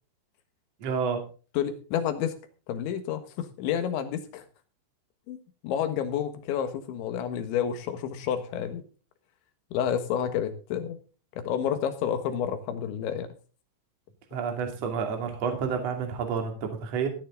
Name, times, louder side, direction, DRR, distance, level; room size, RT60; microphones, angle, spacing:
voice 1, 0.8-1.2 14.3-17.1, right 6 dB, 40° right, 4 dB, 2.9 m, -29 dB
voice 2, 1.6-2.3 2.7-4.5 5.3-5.4 5.6-8.8 9.7-11.0 11.4-13.3, left 9 dB, 75° left, 9 dB, 3.6 m, -29 dB
16.5 x 9.6 x 3.8 m, 0.37 s
omnidirectional pair, 5.5 m